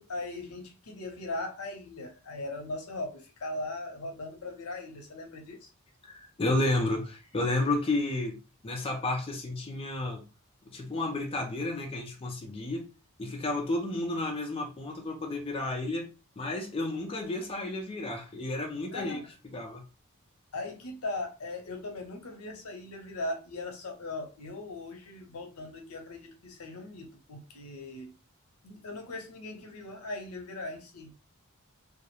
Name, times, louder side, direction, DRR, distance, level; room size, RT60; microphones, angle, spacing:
voice 1, 0.0-5.7 18.9-19.2 20.5-28.1 28.6-31.1, left 2 dB, 75° left, 0.6 m, -39 dB
voice 2, 6.0-8.4 8.6-10.2 10.6-12.9 13.2-16.1 16.4-19.2 19.5-19.8, left 2 dB, 25° left, 0.4 m, -31 dB
2.3 x 2.0 x 2.9 m
head